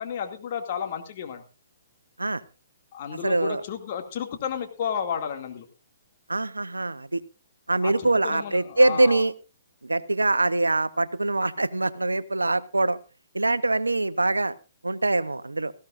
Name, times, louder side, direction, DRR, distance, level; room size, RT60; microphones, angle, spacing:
voice 1, 0.0-1.4 2.9-5.7 7.8-9.2, left 8 dB, 45° left, 5 dB, 2.3 m, -32 dB
voice 2, 3.2-3.6 6.3-7.2 7.7-9.3 9.8-13.0 13.3-14.5 14.8-15.7, right 2 dB, 90° right, 15 dB, 0.8 m, -23 dB
18.0 x 15.5 x 2.6 m, 0.30 s
figure-of-eight pair, 130°, 0 cm